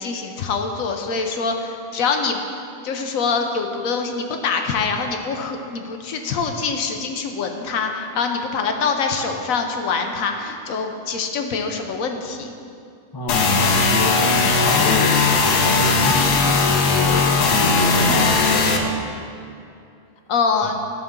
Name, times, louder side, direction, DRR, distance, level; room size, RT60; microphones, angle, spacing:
voice 1, 0.0-2.4 2.8-12.5 20.3-20.8, left 5 dB, 65° left, 4 dB, 1.0 m, -24 dB
voice 2, 13.1-19.1 20.6-20.7, left 2 dB, 30° left, 1 dB, 0.4 m, -27 dB
sound 1, 13.3-18.8, left 4 dB, 80° left, 1.3 m, -18 dB
10.5 x 6.8 x 3.7 m, 2.5 s
omnidirectional pair, 1.7 m